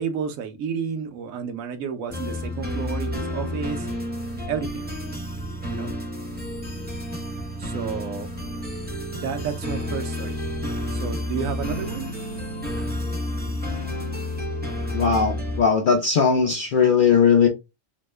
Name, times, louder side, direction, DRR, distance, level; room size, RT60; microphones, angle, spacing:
voice 1, 0.0-3.9 4.5-4.9 5.7-5.9 7.6-8.3 9.1-10.4 10.9-12.1, right 6 dB, 85° right, 1.0 m, -31 dB
sound 1, 2.1-15.6, left 1 dB, 10° right, 0.5 m, -30 dB
voice 2, 14.9-17.5, left 6 dB, 65° left, 0.5 m, -19 dB
2.8 x 2.0 x 3.2 m
omnidirectional pair, 1.4 m